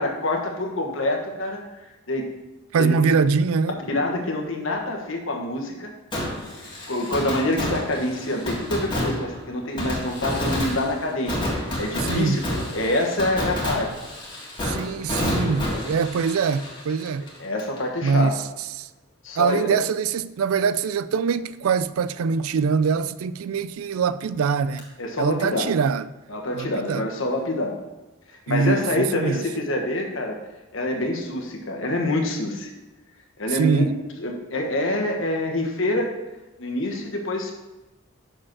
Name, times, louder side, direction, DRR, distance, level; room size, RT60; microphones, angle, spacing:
voice 1, 0.0-1.6 2.1-2.3 2.8-2.9 3.9-5.9 6.9-12.4 12.7-13.9 17.4-18.3 19.2-19.8 25.0-25.7 26.3-27.8 28.5-30.4 30.7-32.7 33.4-33.8 34.2-36.2 36.6-37.5, left 1 dB, 65° left, 1.3 m, -26 dB
voice 2, 2.7-3.8 12.0-12.4 14.6-17.2 18.0-18.3 18.7-18.9 19.4-24.9 25.2-26.1 26.5-27.1 28.5-29.4 33.5-34.0, right 5 dB, 85° right, 0.4 m, -23 dB
Fireworks, 6.1-17.8 18.1-18.2 24.8-24.9, left 1 dB, 20° left, 1.8 m, -29 dB
6.2 x 5.0 x 6.1 m
head